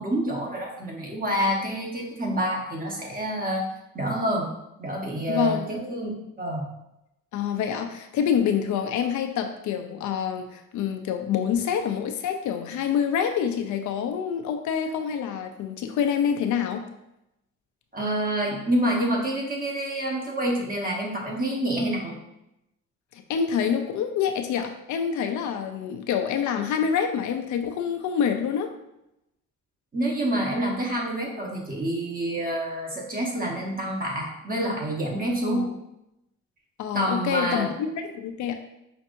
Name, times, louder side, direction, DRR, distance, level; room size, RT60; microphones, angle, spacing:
voice 1, 0.0-3.7 3.9-4.5 4.8-6.1 6.4-6.7 17.9-22.1 29.9-35.7 36.9-37.7, right 1 dB, 30° right, -2 dB, 1.2 m, -27 dB
voice 2, 5.3-5.7 7.3-16.8 23.3-28.7 35.5-35.7 36.8-38.5, left 8 dB, 75° left, 6 dB, 0.5 m, -26 dB
5.6 x 2.6 x 2.5 m, 0.86 s
cardioid pair, 90°, 30 cm